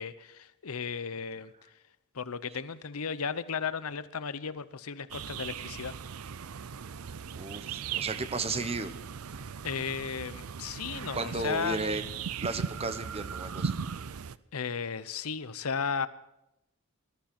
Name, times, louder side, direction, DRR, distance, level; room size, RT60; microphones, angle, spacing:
voice 1, 0.0-1.5 2.1-5.9 9.6-12.0 14.5-16.1, left 6 dB, 90° left, 15 dB, 0.8 m, -35 dB
sound 1, 5.1-14.4, right 6 dB, 85° right, 0.5 m, -38 dB
voice 2, 7.4-8.9 11.1-12.0 12.4-13.8, right 3 dB, 30° right, 11 dB, 1.0 m, -34 dB
20.5 x 13.0 x 4.4 m, 0.87 s
head